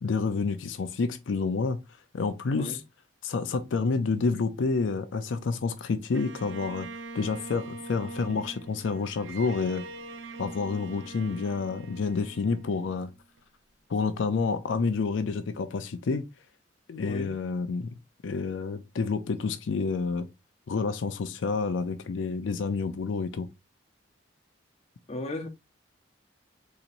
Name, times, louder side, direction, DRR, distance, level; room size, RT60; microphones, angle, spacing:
voice 1, 0.0-1.8 2.1-2.8 3.2-6.9 7.1-9.9 10.4-13.1 13.9-16.2 16.9-18.0 18.2-20.3 20.7-23.5, left 4 dB, 80° left, 0.4 m, -29 dB
Bowed string instrument, 6.1-13.4, right 3 dB, 80° right, 0.6 m, -43 dB
voice 2, 25.1-25.5, left 1 dB, 30° left, 0.6 m, -35 dB
4.1 x 2.8 x 2.5 m
head